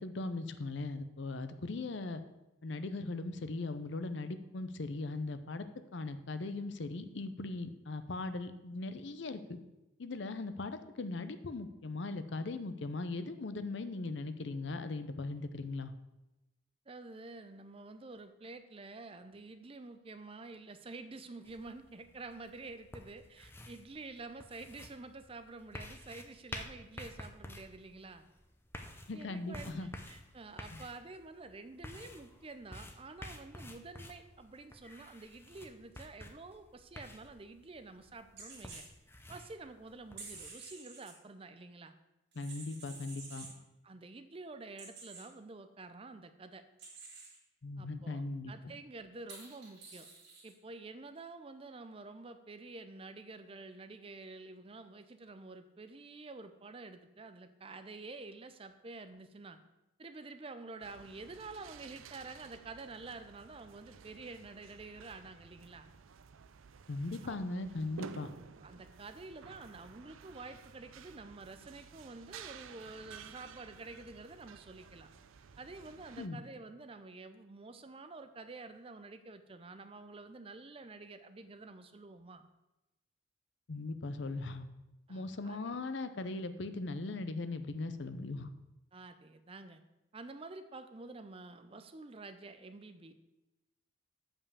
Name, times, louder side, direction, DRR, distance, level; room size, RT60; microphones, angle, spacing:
voice 1, 0.0-2.2 2.6-5.7 5.9-9.6 10.0-15.9 29.1-29.9 30.7-30.8 42.4-43.5 47.6-48.7 66.9-68.3 76.2-76.4 83.7-84.7 85.1-88.5, left 3 dB, 60° left, 11 dB, 0.6 m, -39 dB
voice 2, 16.9-28.2 29.1-38.8 39.3-41.9 43.5-46.6 47.8-50.1 50.4-59.6 60.0-65.9 67.2-67.7 68.2-68.3 68.6-75.1 75.6-82.4 85.1-85.8 88.9-89.8 90.1-93.1, right 3 dB, 30° right, 10 dB, 0.5 m, -49 dB
sound 1, 21.5-40.5, left 1 dB, 10° left, 0.6 m, -51 dB
sound 2, 38.4-38.9 40.2-41.1 42.3-43.5 44.8-45.2 46.8-47.4 49.3-50.5, right 4 dB, 55° right, 2.8 m, -50 dB
sound 3, 60.8-76.3, right 6 dB, 80° right, 0.5 m, -54 dB
7.1 x 5.6 x 6.8 m, 0.98 s
head